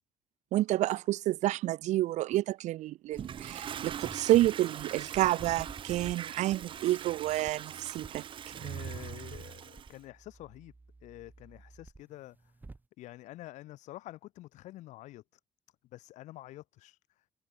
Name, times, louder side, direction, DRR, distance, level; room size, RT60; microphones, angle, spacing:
voice 1, 0.5-8.2, right 15 dB, 80° right, 1.2 m, -29 dB
Toilet flush, 3.1-10.0, right 9 dB, 45° right, 1.8 m, -42 dB
sound 1, 3.2-4.5 4.8-6.2 6.5-6.8 7.3-7.5 7.9-9.5 9.8-12.8, right 3 dB, 15° right, 5.7 m, -51 dB
voice 2, 8.5-10.7 11.0-12.5 13.0-15.4 15.9-17.0, left 16 dB, 90° left, 2.6 m, -48 dB
cardioid pair, 155°, 12 cm